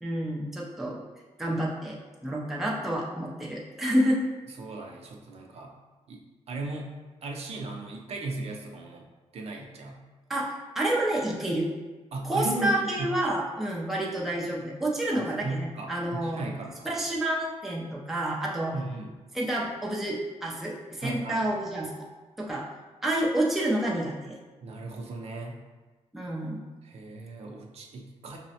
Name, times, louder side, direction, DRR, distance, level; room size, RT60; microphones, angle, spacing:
voice 1, 0.0-1.0 1.4-4.2 10.3-10.5 10.7-11.7 12.2-16.5 16.8-18.7 19.3-22.1 22.4-22.7 23.0-24.4 26.1-26.6, right 1 dB, ahead, -4 dB, 0.4 m, -29 dB
voice 2, 4.6-5.7 6.1-6.2 6.5-6.9 7.2-9.0 9.3-10.0 12.1-13.2 15.1-16.9 18.7-19.2 21.0-21.4 24.6-25.6 26.8-28.4, right 2 dB, 60° right, 1 dB, 0.5 m, -36 dB
5.4 x 2.0 x 2.7 m, 1.3 s
wide cardioid pair, 170°, 12 cm